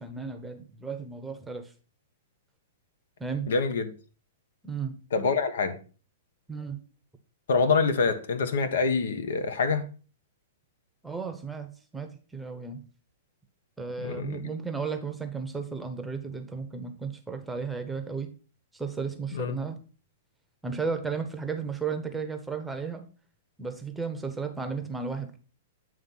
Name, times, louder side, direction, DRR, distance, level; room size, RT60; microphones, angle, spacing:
voice 1, 0.0-1.7 3.2-3.5 4.6-4.9 6.5-6.8 11.0-12.8 13.8-18.3 18.7-19.8 20.6-23.1 23.6-25.4, right 5 dB, 5° right, 0.8 m, -34 dB
voice 2, 3.5-3.9 5.1-5.8 7.5-9.8 14.0-14.5 19.3-19.6, left 4 dB, 80° left, 1.1 m, -26 dB
8.8 x 3.2 x 5.5 m
hypercardioid pair, 150°, 0 cm